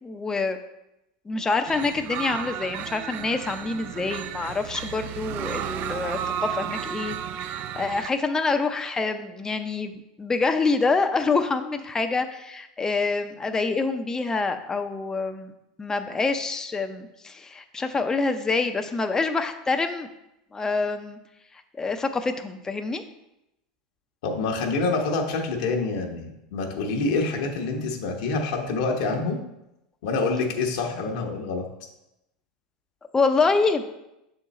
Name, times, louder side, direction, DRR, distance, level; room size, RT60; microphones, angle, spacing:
voice 1, 0.0-0.6 1.3-15.5 15.8-20.1 20.5-21.2 21.8-23.0 33.1-33.9, left 4 dB, 15° left, 7 dB, 0.6 m, -26 dB
sound 1, 1.7-8.1, right 10 dB, 50° right, 0.3 m, -33 dB
voice 2, 24.2-29.4 30.0-31.7, left 3 dB, 75° left, 1 dB, 1.0 m, -26 dB
6.7 x 3.8 x 4.1 m, 0.89 s
hypercardioid pair, 100°, 4 cm